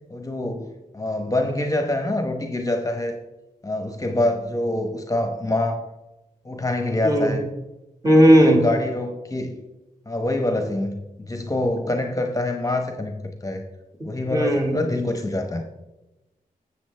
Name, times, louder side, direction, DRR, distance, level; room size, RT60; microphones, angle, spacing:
voice 1, 0.1-3.2 3.6-5.8 6.4-7.5 8.4-9.6 10.1-13.6 14.0-15.6, left 1 dB, 25° left, 4 dB, 1.0 m, -25 dB
voice 2, 7.0-7.4 8.0-8.6 14.3-14.8, equal, 25° right, 1 dB, 2.0 m, -15 dB
10.0 x 7.3 x 3.3 m, 0.99 s
cardioid pair, 70°, 15 cm